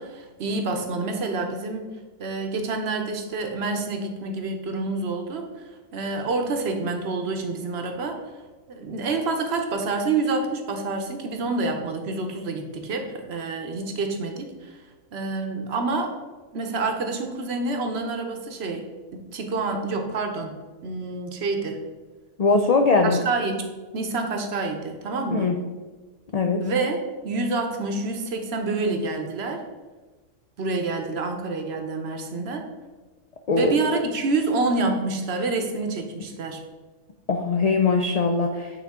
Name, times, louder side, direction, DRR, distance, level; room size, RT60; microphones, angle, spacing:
voice 1, 0.0-1.9 2.2-5.6 5.9-8.2 8.7-14.8 15.1-16.1 16.5-18.9 19.1-20.5 20.8-21.8 23.0-23.7 23.9-25.5 26.6-29.6 30.6-32.7 33.6-36.6, right 3 dB, 60° right, 4 dB, 1.0 m, -27 dB
voice 2, 22.4-23.2 25.3-25.5 26.3-26.6 33.5-33.7 37.3-38.8, left 4 dB, 75° left, 3 dB, 0.3 m, -21 dB
8.5 x 3.7 x 3.6 m, 1.3 s
omnidirectional pair, 1.3 m